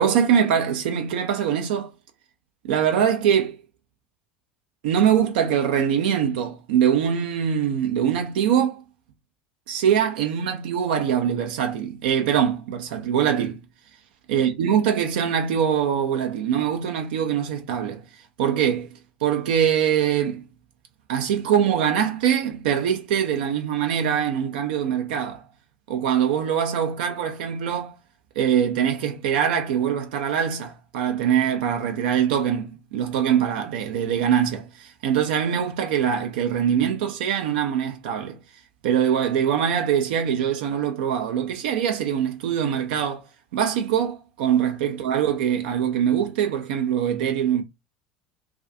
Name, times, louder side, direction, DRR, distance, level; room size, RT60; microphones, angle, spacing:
voice 1, 0.0-1.9 2.7-3.6 4.8-8.8 9.7-13.6 14.3-18.0 18.4-18.9 19.2-20.4 21.1-25.4 25.9-27.9 28.4-38.4 38.8-43.2 43.5-47.6, right 8 dB, 65° right, 0.4 m, -23 dB
2.4 x 2.3 x 2.5 m
figure-of-eight pair, 70°, 6 cm